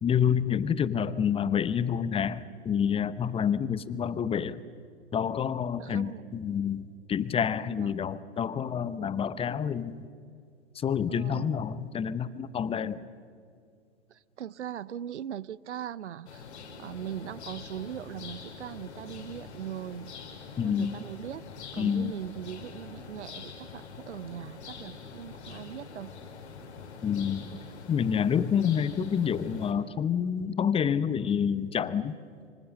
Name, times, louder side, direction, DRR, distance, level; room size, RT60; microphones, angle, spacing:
voice 1, 0.0-4.6 5.1-10.0 10.7-13.0 20.6-20.9 21.8-22.1 27.0-27.5 27.9-32.1, left 8 dB, 15° left, 0.8 m, -28 dB
voice 2, 5.8-6.3 7.7-7.9 11.1-11.6 14.1-16.4 16.8-20.1 20.6-21.4 21.7-26.1, right 10 dB, 90° right, 0.7 m, -40 dB
sound 1, 16.3-29.7, left 5 dB, 75° left, 4.3 m, -45 dB
25.5 x 25.0 x 6.5 m
hypercardioid pair, 115°, 34 cm